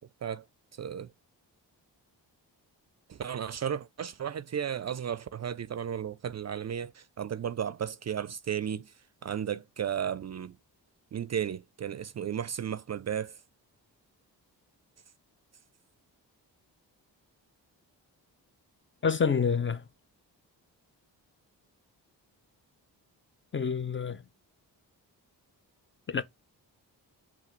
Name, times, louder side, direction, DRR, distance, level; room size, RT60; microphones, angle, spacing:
voice 1, 0.7-1.1 3.1-8.9 9.2-10.6 11.1-13.4, right 8 dB, 40° right, 0.4 m, -34 dB
voice 2, 19.0-19.8 23.5-24.2 26.1-26.2, left 6 dB, 30° left, 0.5 m, -27 dB
5.6 x 2.4 x 3.1 m
supercardioid pair, 40°, 45 cm